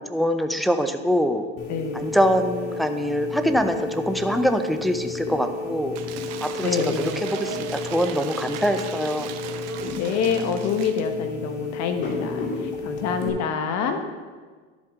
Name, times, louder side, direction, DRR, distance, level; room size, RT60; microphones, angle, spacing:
voice 1, 0.0-1.5 1.9-6.0 6.4-9.3, equal, ahead, 7 dB, 0.5 m, -24 dB
sound 1, 1.6-13.3, left 4 dB, 65° left, 2.2 m, -32 dB
voice 2, 1.7-2.1 6.6-7.2 10.0-12.5 12.8-14.0, left 6 dB, 50° left, 7 dB, 1.2 m, -26 dB
Cheering / Applause / Crowd, 5.9-11.1, right 9 dB, 45° right, 0.8 m, -37 dB
11.0 x 7.5 x 3.7 m, 1.5 s
supercardioid pair, 110°, 36 cm